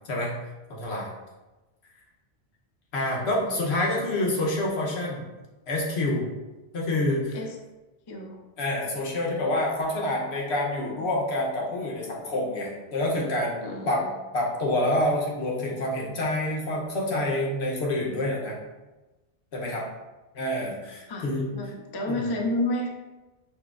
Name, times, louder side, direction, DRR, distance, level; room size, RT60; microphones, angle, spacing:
voice 1, 0.8-1.1 2.9-5.2 5.7-6.3 6.7-7.4 8.6-14.0 14.3-18.6 19.5-19.9 20.3-21.5 22.1-22.2, left 1 dB, 80° left, -3 dB, 1.1 m, -27 dB
voice 2, 8.1-8.4 13.6-14.1 21.1-22.9, left 1 dB, 45° left, 1 dB, 0.3 m, -30 dB
5.9 x 2.2 x 2.4 m, 1.1 s
omnidirectional pair, 1.1 m